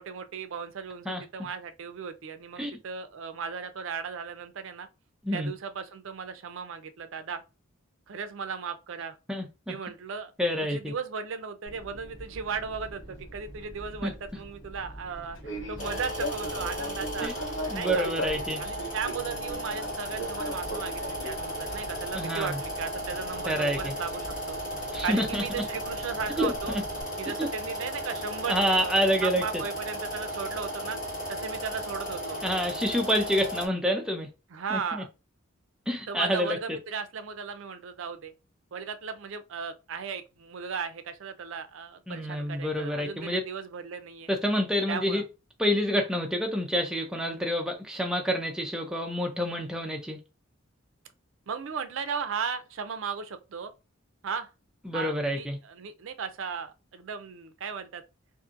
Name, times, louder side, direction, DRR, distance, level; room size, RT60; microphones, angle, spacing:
voice 1, 0.0-4.9 5.3-7.4 8.1-9.2 9.7-10.3 10.6-15.4 15.7-17.3 17.7-18.1 18.6-24.6 25.0-26.7 27.2-28.9 29.2-31.0 31.3-32.4 34.5-35.1 36.1-38.3 38.7-44.3 44.9-45.2 51.5-53.7 54.2-54.5 54.9-58.0, right 6 dB, 65° right, 0.4 m, -36 dB
voice 2, 1.1-1.5 2.6-2.7 5.2-5.5 9.3-9.8 10.4-10.9 14.0-14.1 17.2-17.3 17.7-18.6 22.1-22.6 23.5-23.9 24.9-25.5 26.4-26.8 27.4-27.5 28.5-29.6 32.4-34.3 34.7-35.0 35.9-36.6 42.1-43.4 44.3-45.2 45.6-50.2 54.8-55.6, equal, 5° right, 0.4 m, -28 dB
Fixed-wing aircraft airplane, 11.7-27.0, equal, 60° left, 1.2 m, -40 dB
sound 1, 15.8-33.7, equal, 30° left, 1.7 m, -35 dB
2.6 x 2.5 x 2.5 m
head